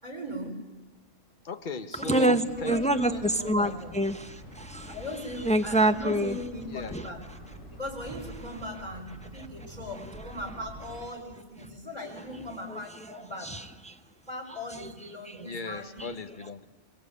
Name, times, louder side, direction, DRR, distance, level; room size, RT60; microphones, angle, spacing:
voice 1, 0.0-0.7 1.9-3.9 4.9-7.2 7.7-13.5 14.3-16.0, equal, 35° right, -4 dB, 5.0 m, -38 dB
voice 2, 1.4-3.0 6.6-7.0 15.4-16.7, left 3 dB, 40° left, 10 dB, 1.3 m, -37 dB
voice 3, 2.1-3.1 3.4-5.0 5.4-6.4 6.9-7.1 12.7-12.8 13.4-13.9, right 1 dB, 5° left, 7 dB, 0.8 m, -26 dB
sound 1, 2.5-11.0, equal, 90° left, 8.6 m, -46 dB
25.0 x 22.5 x 8.7 m, 1.3 s
omnidirectional pair, 1.3 m